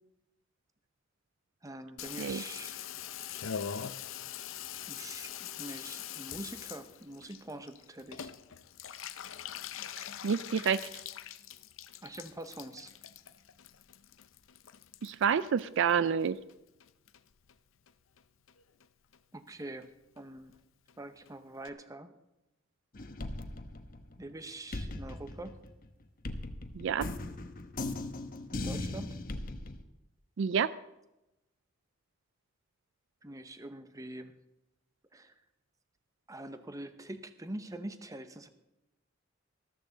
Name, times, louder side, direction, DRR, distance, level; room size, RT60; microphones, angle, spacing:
voice 1, 1.6-2.8 4.9-8.3 12.0-12.9 19.3-20.5 21.0-22.1 24.2-25.6 28.5-29.2 33.2-34.4 35.1-35.3 36.3-38.5, right 1 dB, 15° right, 10 dB, 0.8 m, -44 dB
Water tap faucet / Bathtub (filling or washing), 2.0-16.5 16.8-17.5 17.9-18.0 18.2-18.3 18.5-18.9 19.1-19.2 19.5-19.6 19.8-19.9 20.2-20.3 20.5-20.6 20.9-21.0 21.3-21.4 21.7-21.8, left 9 dB, 85° left, 0.6 m, -43 dB
voice 2, 10.2-10.8 15.0-16.4 26.7-27.1 30.4-30.7, right 7 dB, 65° right, 16 dB, 0.4 m, -28 dB
sound 1, 22.9-24.3 24.7-29.8, left 2 dB, 45° left, 0.9 m, -38 dB
13.5 x 13.5 x 3.9 m, 0.93 s
head